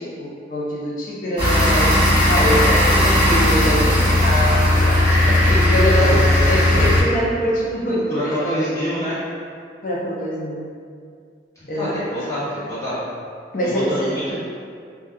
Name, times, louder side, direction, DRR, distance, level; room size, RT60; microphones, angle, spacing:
voice 1, 0.0-9.1 9.8-10.7 11.7-12.1 13.5-14.2, equal, 45° left, -5 dB, 0.5 m, -24 dB
sound 1, 1.4-7.0, left 1 dB, 25° right, 1.3 m, -16 dB
voice 2, 2.3-2.9 4.7-4.9 5.9-6.9 8.1-9.2 11.5-13.0 13.6-14.4, left 1 dB, 20° left, -13 dB, 1.1 m, -26 dB
2.6 x 2.2 x 3.4 m, 2.2 s
head